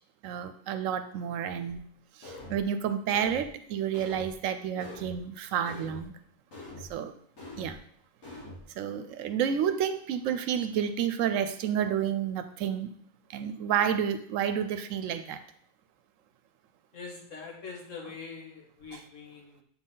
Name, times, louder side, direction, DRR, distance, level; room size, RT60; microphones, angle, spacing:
voice 1, 0.2-1.8 2.2-6.1 6.9-7.1 7.6-7.8 8.8-12.9 13.3-15.4 18.9-19.0, right 8 dB, 80° right, 10 dB, 1.0 m, -30 dB
sound 1, 1.7-1.8 2.2-2.6 3.1-3.5 3.9-4.4 4.8-5.2 5.6-6.1 6.5-6.9 7.4-7.8 8.2-8.6, left 1 dB, 90° left, 2.3 m, -44 dB
voice 2, 16.9-19.6, left 5 dB, 75° left, -1 dB, 1.9 m, -43 dB
7.4 x 4.1 x 3.8 m, 0.63 s
omnidirectional pair, 1.3 m